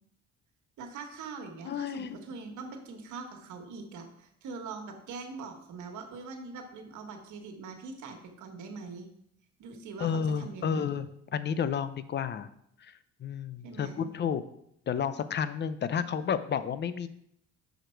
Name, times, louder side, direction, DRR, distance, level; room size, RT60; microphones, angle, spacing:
voice 1, 0.8-9.1 9.6-11.0 13.6-14.0, right 4 dB, 80° right, 4 dB, 1.4 m, -42 dB
voice 2, 1.7-2.2 10.0-11.1 11.3-12.5 12.8-12.9 13.2-14.4 14.9-17.1, left 7 dB, 35° left, 13 dB, 0.5 m, -31 dB
6.5 x 5.0 x 4.4 m, 0.72 s
cardioid pair, 105°, 29 cm